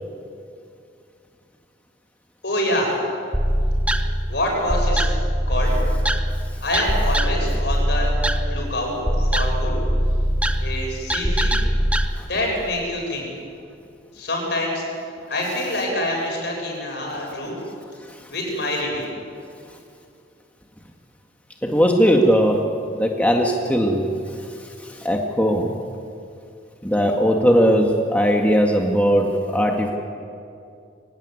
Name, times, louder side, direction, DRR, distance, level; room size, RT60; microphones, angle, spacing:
voice 1, 2.4-3.0 4.3-5.0 5.5-5.8 6.6-8.1 8.5-9.8 10.6-11.6 12.3-13.3 14.1-14.8 15.3-17.6 18.3-19.1, left 1 dB, 65° left, 0 dB, 7.5 m, -26 dB
sound 1, 3.3-12.1, equal, 5° right, 0.9 m, -22 dB
voice 2, 21.6-22.6 23.0-24.1 25.0-25.7 26.8-29.9, equal, 10° left, 1 dB, 1.7 m, -18 dB
23.5 x 17.0 x 9.7 m, 2.5 s
head